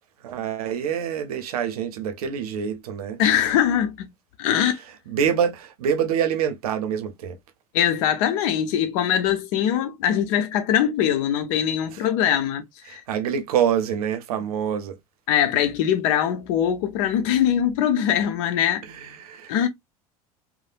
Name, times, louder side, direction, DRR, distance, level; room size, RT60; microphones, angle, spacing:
voice 1, 0.2-3.2 4.6-4.7 5.1-7.4 11.9-12.0 12.9-15.0 18.8-19.7, right 8 dB, 80° right, 0.6 m, -26 dB
voice 2, 3.2-4.1 4.4-4.8 7.7-12.6 12.9-13.0 15.3-18.8 19.5-19.7, left 10 dB, 65° left, 0.7 m, -22 dB
3.2 x 2.0 x 2.5 m
hypercardioid pair, 75°, 19 cm